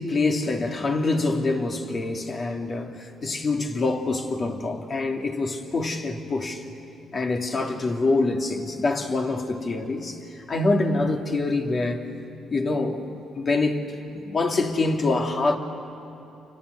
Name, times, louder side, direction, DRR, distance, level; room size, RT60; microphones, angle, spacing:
voice 1, 0.0-6.7 7.1-10.2 10.5-12.1 12.5-13.1 13.3-15.6, left 3 dB, 40° left, 2.7 m, -25 dB
28.5 x 25.0 x 8.2 m
cardioid pair, 90°, 0 cm